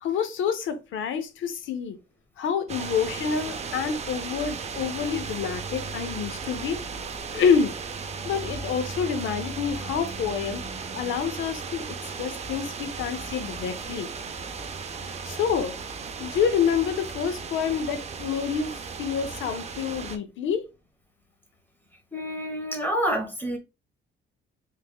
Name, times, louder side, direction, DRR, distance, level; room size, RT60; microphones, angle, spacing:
voice 1, 0.0-2.0 2.4-6.8 7.3-7.8 8.2-10.6 10.9-11.9 12.2-14.1 15.0-15.7 16.2-20.7, left 7 dB, 75° left, 0.7 m, -27 dB
sound 1, 2.7-20.2, right 5 dB, 35° right, 0.5 m, -36 dB
voice 2, 22.1-23.6, equal, 10° left, 1.2 m, -28 dB
3.4 x 3.3 x 2.3 m
cardioid pair, 90°, 20 cm